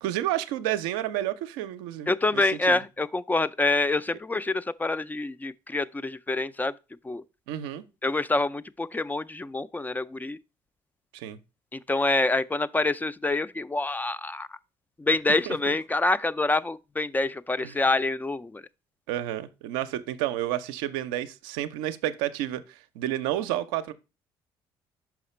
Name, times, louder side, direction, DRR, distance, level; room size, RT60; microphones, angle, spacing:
voice 1, 0.0-2.8 7.5-7.8 11.1-11.4 15.5-15.7 17.6-17.8 19.1-23.9, right 13 dB, 90° right, 0.5 m, -31 dB
voice 2, 2.1-6.8 7.0-7.2 8.0-10.4 11.7-14.5 15.0-18.6, left 2 dB, 15° left, 0.3 m, -26 dB
5.9 x 4.9 x 4.2 m
supercardioid pair, 65°, 12 cm